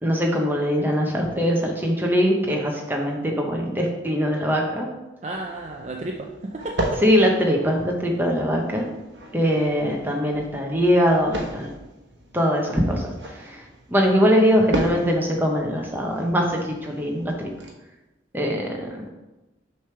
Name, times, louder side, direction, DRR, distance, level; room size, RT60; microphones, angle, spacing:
voice 1, 0.0-4.9 7.0-8.9 9.3-11.7 12.3-13.6 13.9-17.5 18.3-19.1, equal, 10° right, 0 dB, 0.8 m, -22 dB
voice 2, 5.2-7.0, right 2 dB, 35° right, 1 dB, 0.5 m, -32 dB
sound 1, 5.3-17.7, right 1 dB, 65° right, 1.0 m, -35 dB
6.6 x 3.3 x 5.7 m, 1.0 s
head